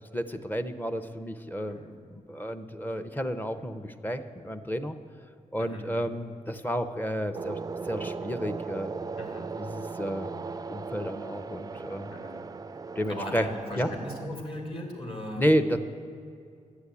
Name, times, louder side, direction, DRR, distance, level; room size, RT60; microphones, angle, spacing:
voice 1, 0.1-5.0 5.5-7.6 7.8-8.9 9.6-10.3 10.7-12.1 13.0-13.5 13.8-13.9 15.4-15.8, equal, 15° left, 10 dB, 0.7 m, -31 dB
voice 2, 5.6-5.9 9.2-9.5 12.1-12.4 13.1-15.4, left 1 dB, 40° left, 2 dB, 2.7 m, -38 dB
sound 1, 7.3-14.3, right 4 dB, 25° right, 0.4 m, -38 dB
11.5 x 8.9 x 8.4 m, 2.5 s
wide cardioid pair, 105°, 14 cm